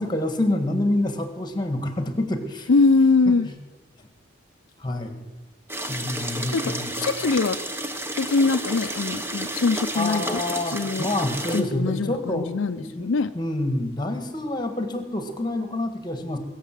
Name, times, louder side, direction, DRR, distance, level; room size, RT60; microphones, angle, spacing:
voice 1, 0.0-2.7 3.3-3.5 4.8-5.2 5.9-6.9 9.9-12.5 12.8-13.1 13.3-16.4, left 1 dB, 20° left, 7 dB, 1.6 m, -27 dB
voice 2, 2.7-3.5 6.5-7.6 8.2-11.1 11.5-13.3, left 4 dB, 70° left, 9 dB, 0.5 m, -22 dB
sound 1, 5.7-11.6, right 1 dB, 10° right, 1.0 m, -31 dB
22.0 x 7.4 x 7.6 m, 1.2 s
head